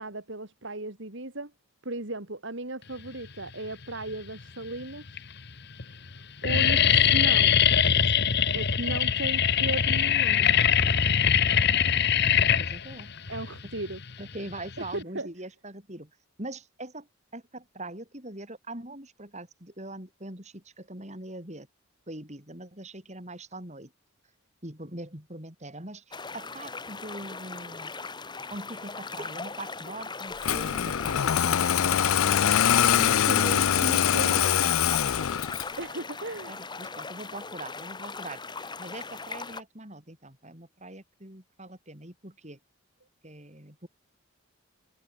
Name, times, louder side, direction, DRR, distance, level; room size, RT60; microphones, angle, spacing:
voice 1, 0.0-1.5 1.8-5.0 6.4-7.6 8.5-10.5 13.3-14.0 14.9-15.3 32.9-34.7 35.8-36.6, right 2 dB, 55° right, 2.6 m, -36 dB
sound 1, 3.8-4.4 5.1-5.2 5.5-5.8 6.1-15.0, left 8 dB, 50° left, 1.2 m, -23 dB
voice 2, 12.3-13.1 14.2-16.1 16.4-17.1 17.3-21.7 22.1-23.9 24.6-27.9 28.5-31.2 36.5-42.6 43.2-43.9, right 2 dB, 30° right, 5.2 m, -42 dB
sound 2, 26.1-39.6, left 4 dB, 20° left, 1.6 m, -39 dB
Engine starting, 30.4-35.8, left 9 dB, 70° left, 0.5 m, -23 dB
head